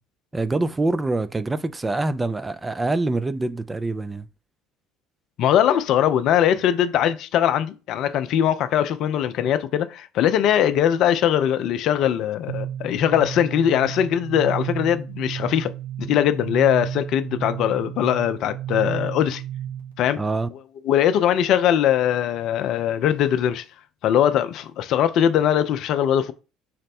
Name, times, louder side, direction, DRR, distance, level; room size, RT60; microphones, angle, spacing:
voice 1, 0.3-4.3 20.2-20.5, right 2 dB, 20° right, 0.3 m, -25 dB
voice 2, 5.4-15.7 16.0-19.4 20.0-20.2 20.8-23.6 24.0-26.3, left 10 dB, 60° left, 0.4 m, -21 dB
sound 1, 12.5-20.0, right 11 dB, 90° right, 0.5 m, -32 dB
4.1 x 2.1 x 4.2 m
hypercardioid pair, 65°, 0 cm